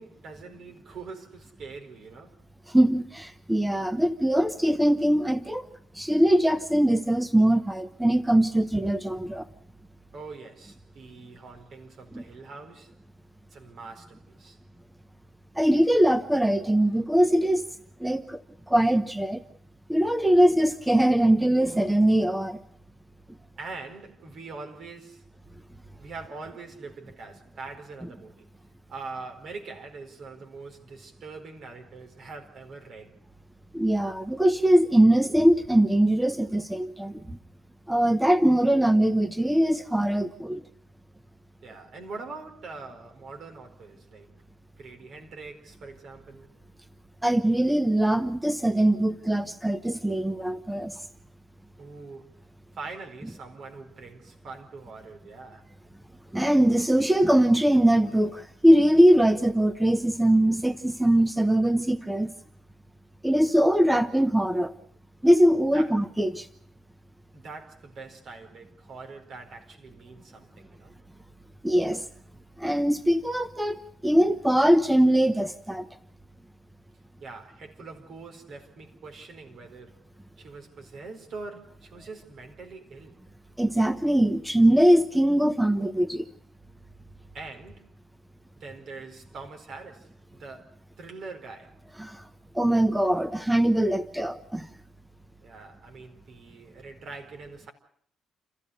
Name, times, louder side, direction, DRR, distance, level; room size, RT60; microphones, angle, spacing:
voice 1, 0.0-2.4 10.1-12.9 13.5-14.6 23.6-25.3 26.0-28.4 28.9-33.2 41.6-44.3 44.8-46.5 51.8-52.4 52.7-55.7 65.7-65.9 67.3-71.0 77.2-80.0 80.4-83.2 87.3-87.9 88.6-91.8 95.4-97.7, right 4 dB, 60° right, 4.7 m, -43 dB
voice 2, 2.7-5.7 5.9-9.4 12.1-12.2 15.6-17.6 18.0-18.4 18.7-19.4 19.9-22.6 33.7-37.4 37.9-40.6 47.2-50.9 56.3-62.3 63.2-64.7 65.2-66.5 71.6-72.0 72.6-75.9 83.6-86.3 92.0-92.2 92.5-94.7, right 1 dB, 5° right, 1.0 m, -22 dB
28.0 x 14.5 x 8.2 m
cardioid pair, 90°, 0 cm